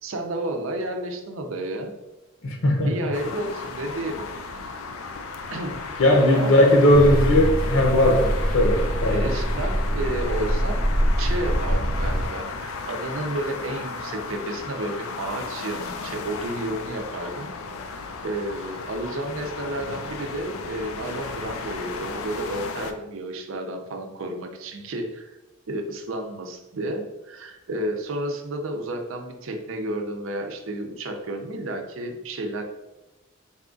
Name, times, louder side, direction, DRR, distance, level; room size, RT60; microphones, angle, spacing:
voice 1, 0.0-1.9 2.9-4.6 5.5-6.0 6.3-6.7 9.1-10.9 11.2-17.5 18.2-25.4 25.7-32.6, right 1 dB, 70° right, 4 dB, 0.6 m, -31 dB
voice 2, 2.4-2.9 6.0-9.3, left 1 dB, 65° left, 1 dB, 0.9 m, -18 dB
sound 1, 3.1-22.9, left 4 dB, 85° left, 0.4 m, -35 dB
sound 2, 6.9-12.3, equal, 5° left, 0.7 m, -24 dB
4.2 x 2.4 x 3.7 m, 1.0 s
head